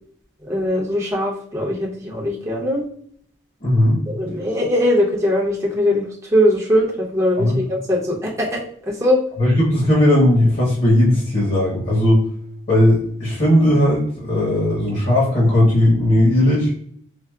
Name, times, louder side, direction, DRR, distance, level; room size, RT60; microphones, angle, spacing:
voice 1, 0.5-2.8 4.1-9.2, left 1 dB, 15° right, -3 dB, 0.7 m, -20 dB
voice 2, 3.6-4.0 7.4-7.6 9.4-12.2 12.7-16.7, left 1 dB, 45° left, -5 dB, 1.0 m, -16 dB
4.6 x 2.0 x 2.3 m, 0.64 s
head